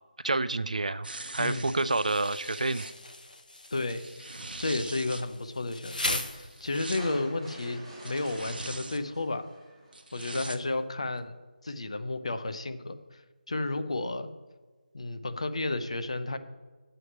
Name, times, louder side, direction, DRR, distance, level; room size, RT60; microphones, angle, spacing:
voice 1, 0.2-1.1 1.3-2.8, right 2 dB, 50° right, 15 dB, 0.3 m, -28 dB
sound 1, 1.0-2.9 3.7-5.2 6.3-7.0 8.0-9.0 9.9-10.6 11.2-11.3, right 2 dB, 75° right, 0.9 m, -42 dB
voice 2, 1.4-1.8 3.7-9.5 10.1-11.3 11.6-13.2 13.5-14.3 14.9-16.4, left 2 dB, 40° left, 10 dB, 0.6 m, -32 dB
Insect, 2.1-7.0, left 2 dB, 60° left, 1.1 m, -38 dB
sound 2, 7.0-10.2, right 1 dB, ahead, 3.4 m, -46 dB
12.0 x 7.7 x 3.2 m, 1.3 s
figure-of-eight pair, 175°, 5 cm